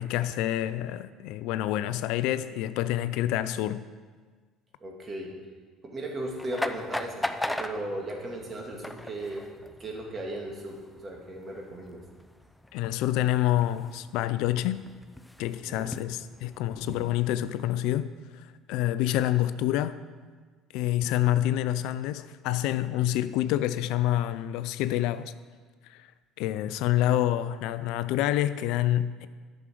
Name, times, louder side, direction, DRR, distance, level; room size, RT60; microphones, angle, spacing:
voice 1, 0.0-3.8 12.7-14.9 15.4-20.0 20.7-25.3 25.9-26.1 26.4-29.3, left 13 dB, 75° left, 0.3 m, -27 dB
voice 2, 4.8-5.3 5.8-9.5 9.8-10.8 11.0-12.0 15.6-15.9, right 1 dB, 35° right, 2.3 m, -36 dB
sound 1, 6.2-17.4, left 1 dB, 5° left, 0.6 m, -39 dB
9.7 x 6.3 x 6.1 m
hypercardioid pair, 75°, 0 cm